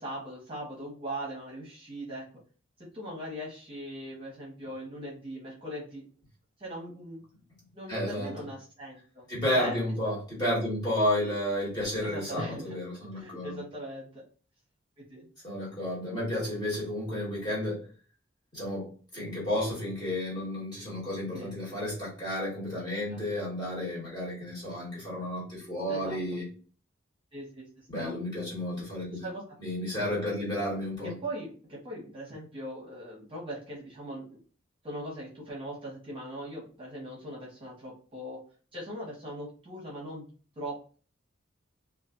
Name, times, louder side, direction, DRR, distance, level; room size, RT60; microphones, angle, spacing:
voice 1, 0.0-2.3 2.8-6.0 6.6-7.2 7.7-9.3 9.5-9.7 10.0-10.1 12.0-12.7 13.1-14.2 15.0-15.3 21.3-21.5 23.1-23.2 25.9-26.2 27.3-28.1 29.2-29.4 31.0-34.4 34.8-38.4 38.7-40.3 40.6-40.9, right 1 dB, 25° right, -5 dB, 0.9 m, -40 dB
voice 2, 7.9-8.3 9.3-13.6 15.4-17.9 18.5-26.4 27.9-29.3 29.6-31.1, left 1 dB, 20° left, -7 dB, 1.4 m, -32 dB
2.4 x 2.3 x 2.4 m, 0.39 s
head